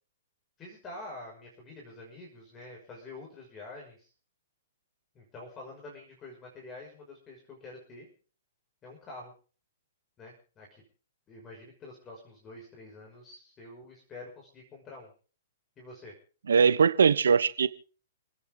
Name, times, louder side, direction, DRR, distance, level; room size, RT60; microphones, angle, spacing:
voice 1, 0.6-4.1 5.1-8.1 8.8-9.3 10.2-10.8 11.3-15.1 15.8-16.1, left 2 dB, 20° left, -1 dB, 6.1 m, -47 dB
voice 2, 16.5-17.7, right 6 dB, 85° right, 15 dB, 1.0 m, -21 dB
29.5 x 9.8 x 3.8 m, 0.38 s
hypercardioid pair, 135°, 0 cm